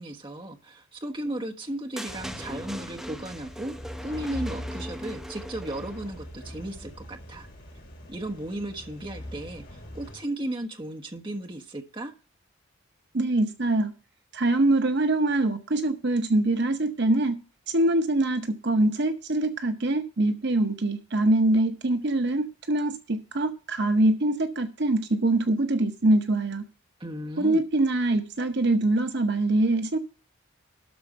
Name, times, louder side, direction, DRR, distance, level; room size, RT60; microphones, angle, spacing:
voice 1, 0.0-3.8 4.0-7.5 8.1-12.1 27.0-27.6, right 1 dB, 25° right, 3 dB, 1.3 m, -35 dB
sound 1, 2.0-6.2, equal, ahead, 0.7 m, -40 dB
sound 2, 2.1-10.2, left 1 dB, 50° left, 3.0 m, -42 dB
voice 2, 13.1-13.9 14.3-17.3 17.7-26.6 27.4-30.0, right 2 dB, 55° right, 8 dB, 0.8 m, -24 dB
12.5 x 4.4 x 6.7 m, 0.35 s
head